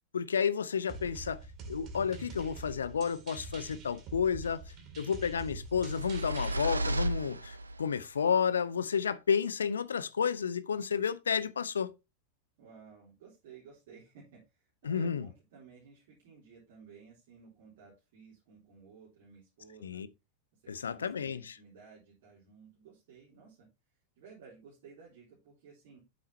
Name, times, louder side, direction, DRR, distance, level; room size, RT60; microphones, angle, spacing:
voice 1, 0.1-1.4 1.7-11.9 14.8-15.3 19.8-20.1 20.7-21.5, left 7 dB, 70° left, 0.6 m, -31 dB
sound 1, 0.9-6.5, right 3 dB, 35° right, 2.5 m, -45 dB
sound 2, 5.6-8.0, right 1 dB, 80° right, 0.6 m, -34 dB
voice 2, 12.6-20.0 20.5-23.7 24.2-26.0, right 6 dB, 50° right, 3.5 m, -55 dB
8.7 x 7.4 x 2.8 m
figure-of-eight pair, 90°, 0 cm